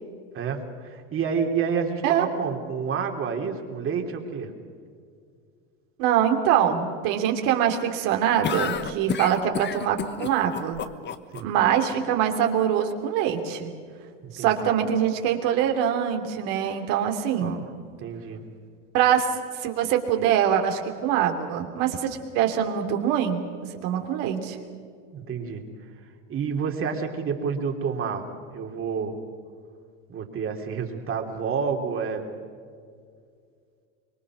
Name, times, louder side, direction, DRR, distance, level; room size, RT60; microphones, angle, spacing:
voice 1, 0.3-4.5 11.3-11.5 14.2-14.7 17.4-17.6 18.0-18.4 25.1-25.6 26.3-29.2 30.1-32.2, right 6 dB, 35° right, 3 dB, 3.2 m, -29 dB
voice 2, 6.0-10.8 11.4-13.7 14.3-17.6 18.9-24.6, right 9 dB, 65° right, 4 dB, 3.1 m, -24 dB
sound 1, 8.4-11.4, left 7 dB, 30° left, 1.2 m, -30 dB
25.0 x 21.5 x 6.3 m, 2.2 s
supercardioid pair, 110°, 35 cm